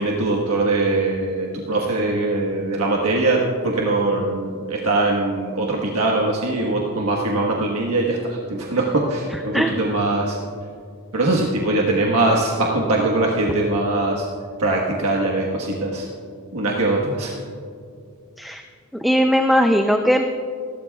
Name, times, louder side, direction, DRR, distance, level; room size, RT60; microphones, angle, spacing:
voice 1, 0.0-10.4 11.1-14.3 14.6-16.1 16.5-17.4, right 2 dB, 80° right, -2 dB, 1.4 m, -21 dB
voice 2, 19.0-20.3, equal, ahead, 4 dB, 0.4 m, -18 dB
28.5 x 12.5 x 2.4 m, 2.3 s
head